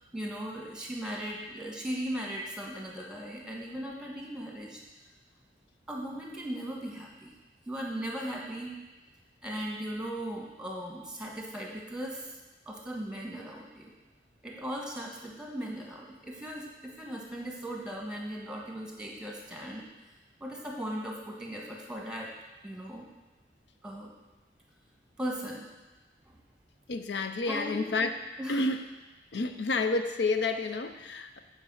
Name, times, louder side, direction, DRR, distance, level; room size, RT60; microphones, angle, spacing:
voice 1, 0.0-4.8 5.9-7.3 7.7-8.8 9.4-12.3 12.6-13.9 14.4-19.9 20.4-22.3 22.6-23.1 23.8-24.1 25.2-25.6 26.2-26.4 27.5-27.9 28.4-28.8, right 1 dB, 5° right, -2 dB, 1.5 m, -38 dB
voice 2, 26.9-28.1 28.5-28.8 29.3-31.4, left 3 dB, 75° left, 8 dB, 0.6 m, -29 dB
8.8 x 4.6 x 6.2 m, 1.2 s
head